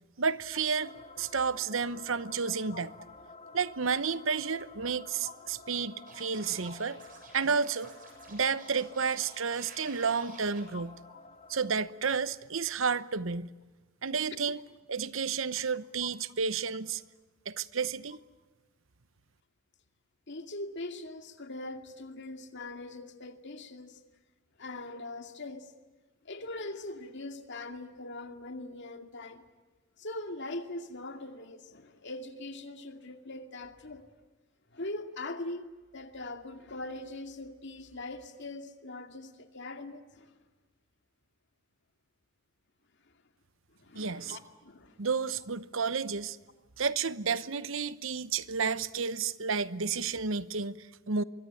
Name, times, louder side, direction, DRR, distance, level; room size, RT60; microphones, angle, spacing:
voice 1, 0.2-2.9 3.5-7.0 7.3-7.9 8.3-10.9 11.5-13.5 14.0-14.6 14.9-17.0 17.5-18.2 43.9-44.4 45.0-46.4 46.8-51.2, right 5 dB, 65° right, 1.0 m, -31 dB
sound 1, 0.8-11.8, left 3 dB, 35° left, 2.5 m, -51 dB
Scratching (performance technique), 6.1-10.6, right 4 dB, 40° right, 7.9 m, -52 dB
voice 2, 10.7-11.2 14.4-14.5 20.3-24.0 24.6-25.7 26.2-29.4 30.0-34.1 34.7-40.4 43.0-43.1 43.8-45.0, left 2 dB, 55° left, 2.3 m, -42 dB
24.5 x 23.0 x 9.2 m
head